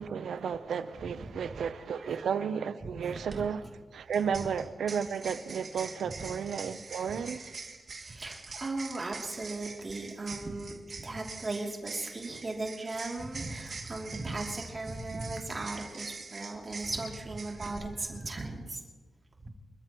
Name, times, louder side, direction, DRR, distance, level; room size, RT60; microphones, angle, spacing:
voice 1, 0.0-3.6 3.9-7.5, right 7 dB, 85° right, 0.7 m, -33 dB
voice 2, 3.0-3.4 7.1-7.2 8.0-18.8 19.4-19.5, right 2 dB, 35° right, 2.8 m, -37 dB
sound 1, 3.3-3.4 4.1-17.8, right 4 dB, 55° right, 2.4 m, -44 dB
28.0 x 13.0 x 3.1 m
cardioid pair, 80°, 0 cm